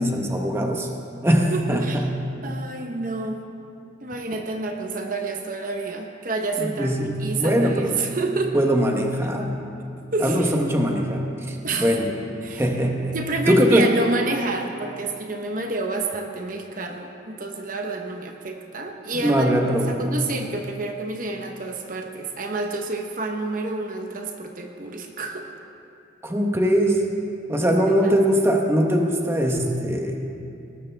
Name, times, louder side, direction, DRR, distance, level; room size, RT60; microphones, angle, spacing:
voice 1, 0.0-2.0 6.6-8.0 8.5-9.6 10.2-12.1 12.6-13.2 13.5-13.9 19.2-20.2 26.2-27.0 27.5-30.2, equal, 15° right, 1 dB, 1.1 m, -21 dB
voice 2, 1.5-2.1 2.4-3.4 4.0-8.6 10.1-10.5 11.6-12.2 12.4-12.6 13.1-19.5 19.9-25.5 27.9-28.1, right 3 dB, 45° right, 3 dB, 1.0 m, -29 dB
20.0 x 18.5 x 3.4 m, 2.6 s
head